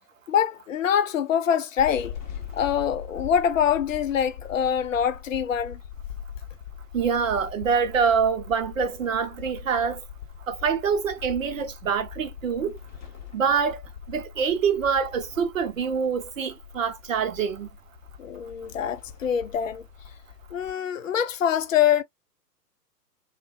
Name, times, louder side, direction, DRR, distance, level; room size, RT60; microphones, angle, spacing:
voice 1, 0.3-2.2 2.5-5.8 18.2-19.8 20.5-22.0, left 8 dB, 55° left, 0.5 m, -24 dB
sound 1, 1.8-20.7, left 8 dB, 30° left, 1.1 m, -42 dB
voice 2, 6.9-10.0 10.5-12.8 13.3-13.8 14.1-17.7, right 6 dB, 50° right, 0.7 m, -25 dB
2.6 x 2.2 x 2.3 m
figure-of-eight pair, 125°, 50 cm